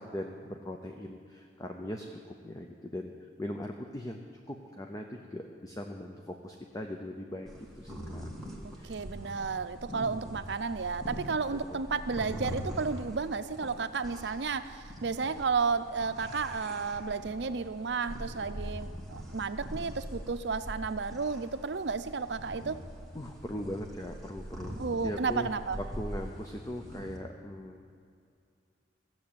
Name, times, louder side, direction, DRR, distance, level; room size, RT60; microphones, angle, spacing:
voice 1, 0.0-7.5 7.8-8.2 8.8-8.9 11.7-11.8 23.1-24.8 25.0-25.5 26.0-27.8, left 1 dB, 20° left, 3 dB, 0.6 m, -40 dB
sound 1, 7.5-27.2, equal, ahead, 1.6 m, -43 dB
voice 2, 8.6-22.8 24.8-25.8, right 4 dB, 65° right, 10 dB, 0.5 m, -32 dB
15.5 x 7.5 x 8.6 m, 2.4 s
head